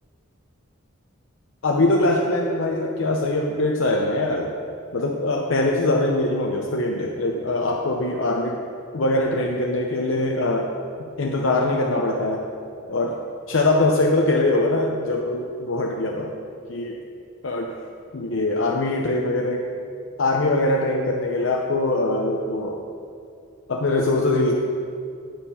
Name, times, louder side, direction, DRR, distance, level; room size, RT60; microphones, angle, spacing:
voice 1, 1.6-4.5 4.9-8.6 8.9-10.8 11.2-12.5 12.9-13.2 13.5-16.3 16.7-17.0 17.4-17.8 18.1-19.7 20.2-22.8 23.7-24.5, left 2 dB, 70° left, 0 dB, 0.7 m, -22 dB
9.3 x 6.9 x 5.6 m, 2.5 s
head